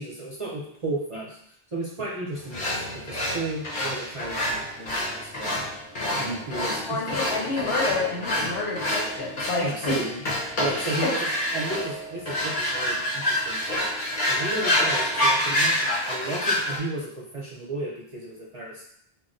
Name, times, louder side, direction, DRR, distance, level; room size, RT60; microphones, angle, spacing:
voice 1, 0.0-1.4 1.7-5.6 6.2-7.2 9.6-10.2 10.6-11.2 11.5-13.9 14.2-18.8, right 2 dB, 40° right, -5 dB, 0.5 m, -33 dB
sound 1, 2.5-16.8, left 1 dB, 55° left, 0.8 m, -27 dB
voice 2, 6.9-10.0 11.0-11.2, left 3 dB, 80° left, -2 dB, 1.0 m, -29 dB
2.3 x 2.1 x 3.7 m, 0.68 s
omnidirectional pair, 1.0 m